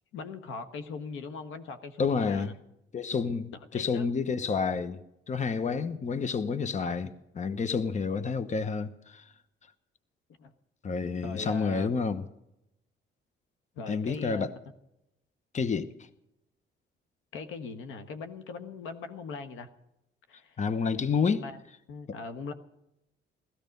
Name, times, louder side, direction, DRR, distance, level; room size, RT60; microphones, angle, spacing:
voice 1, 0.1-2.5 3.7-4.1 10.4-10.5 11.2-11.9 13.8-14.5 17.3-19.7 20.3-20.6 21.2-21.6 21.9-22.5, left 4 dB, 90° left, 1.4 m, -40 dB
voice 2, 2.0-2.6 2.9-7.1 7.3-9.2 10.8-12.3 13.9-14.5 15.5-15.9 20.6-21.4 22.1-22.2, left 5 dB, 35° left, 1.0 m, -29 dB
16.5 x 14.5 x 5.4 m
cardioid pair, 90°, 20 cm